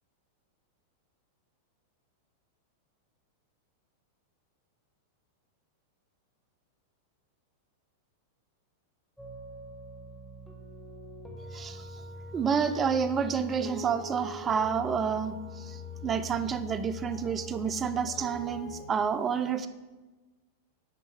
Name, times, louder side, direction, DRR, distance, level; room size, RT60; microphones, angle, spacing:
sound 1, 9.2-18.9, left 2 dB, ahead, 1.1 m, -43 dB
voice 1, 11.5-11.9 12.3-19.7, right 6 dB, 25° right, 12 dB, 0.4 m, -29 dB
7.8 x 5.4 x 3.2 m, 1.2 s
hypercardioid pair, 100°, 0 cm